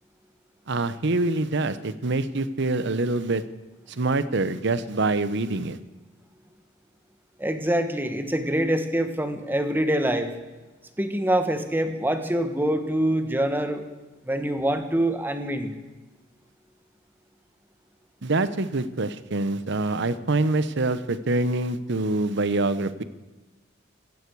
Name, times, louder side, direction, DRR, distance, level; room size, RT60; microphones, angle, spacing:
voice 1, 0.7-3.4 3.9-5.8 18.2-23.0, right 2 dB, 60° right, 14 dB, 0.9 m, -25 dB
voice 2, 7.4-10.3 11.0-13.8 14.2-15.7, right 1 dB, 10° right, 8 dB, 1.3 m, -25 dB
16.5 x 15.5 x 4.7 m, 1.2 s
head